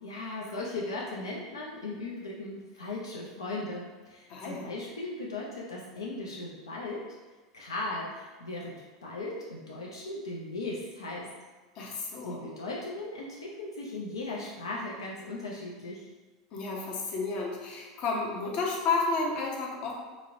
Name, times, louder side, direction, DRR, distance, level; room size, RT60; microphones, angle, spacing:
voice 1, 0.0-7.0 7.5-8.8 9.0-11.3 11.8-11.9 12.2-16.1, left 2 dB, 85° left, -3 dB, 0.4 m, -37 dB
voice 2, 4.3-4.7 11.8-12.4 16.5-19.9, left 3 dB, 50° left, -1 dB, 0.7 m, -31 dB
2.9 x 2.9 x 2.6 m, 1.3 s
hypercardioid pair, 90°, 2 cm